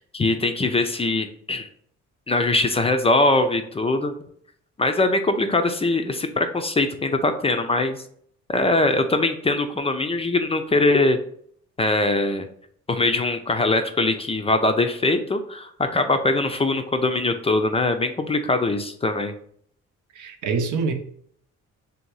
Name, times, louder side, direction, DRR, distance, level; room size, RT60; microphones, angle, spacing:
voice 1, 0.0-1.7 2.3-4.1 4.8-8.0 8.5-11.2 11.8-12.5 12.9-19.3, left 2 dB, 20° left, 7 dB, 0.4 m, -22 dB
voice 2, 20.1-20.9, right 4 dB, 75° right, 6 dB, 0.7 m, -25 dB
3.4 x 2.7 x 4.6 m, 0.63 s
cardioid pair, 90°, 30 cm